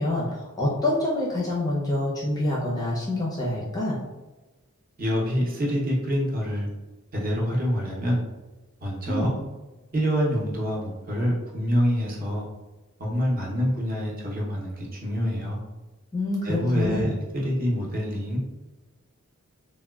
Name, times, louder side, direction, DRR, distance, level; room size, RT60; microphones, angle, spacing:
voice 1, 0.0-4.0 9.1-9.4 16.1-17.1, left 1 dB, 15° left, -5 dB, 0.5 m, -26 dB
voice 2, 5.0-6.7 7.1-8.2 8.8-9.3 9.9-12.5 13.0-15.6 16.4-18.4, equal, 40° right, -3 dB, 0.7 m, -26 dB
3.3 x 2.2 x 2.2 m, 1.1 s
head